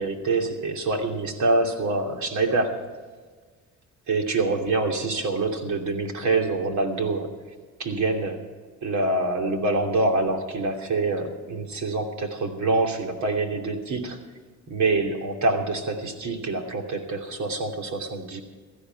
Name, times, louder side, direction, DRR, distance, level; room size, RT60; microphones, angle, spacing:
voice 1, 0.0-2.8 4.1-7.3 7.8-8.4 8.8-14.2 14.7-18.4, right 3 dB, 70° right, 3 dB, 2.9 m, -25 dB
17.0 x 14.0 x 4.7 m, 1.4 s
cardioid pair, 90°, 30 cm